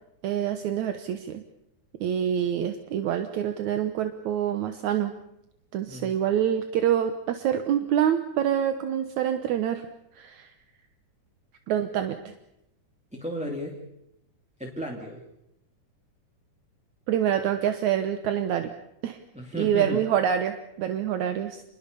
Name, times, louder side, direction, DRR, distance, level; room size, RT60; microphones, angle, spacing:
voice 1, 0.2-1.4 2.0-5.1 5.7-9.9 10.2-10.5 11.7-12.3 17.1-18.7 19.0-19.2 19.6-21.6, right 9 dB, 75° right, 8 dB, 2.4 m, -26 dB
voice 2, 13.1-13.8 14.6-15.2 19.3-20.0, equal, ahead, 0 dB, 2.5 m, -34 dB
28.0 x 21.5 x 7.0 m, 0.83 s
omnidirectional pair, 3.5 m